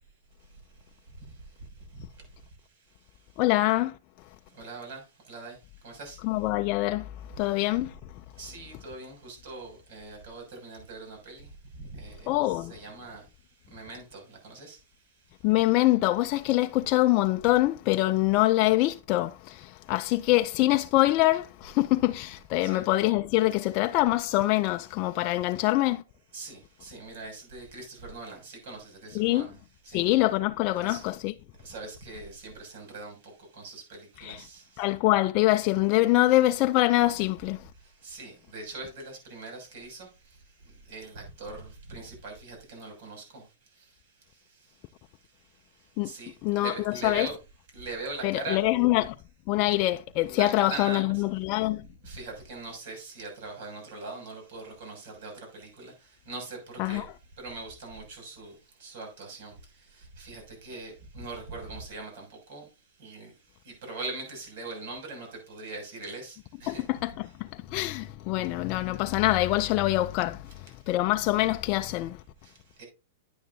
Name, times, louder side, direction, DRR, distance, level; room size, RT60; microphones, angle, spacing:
voice 1, 3.4-4.0 6.2-8.0 12.3-12.7 15.4-26.0 29.1-29.5 29.9-31.3 34.2-34.5 34.8-37.7 46.0-46.1 46.4-47.3 48.2-49.1 49.5-51.9 56.8-57.1 66.7-72.2, left 18 dB, 40° left, 0.4 m, -25 dB
voice 2, 4.5-5.0 5.3-5.6 5.8-6.2 8.4-11.5 11.8-13.2 13.7-14.8 22.6-22.8 26.3-29.5 29.8-30.0 30.8-31.0 31.6-33.1 33.5-34.6 38.0-40.1 40.9-43.4 46.0-47.4 47.7-48.6 50.3-51.2 52.0-55.9 56.3-56.6 56.8-57.1 57.4-58.5 58.8-59.5 60.2-62.6 63.0-63.3 63.9-66.8 72.8-72.9, right 3 dB, 60° right, 6.5 m, -41 dB
10.0 x 9.2 x 2.7 m
hypercardioid pair, 140°, 0 cm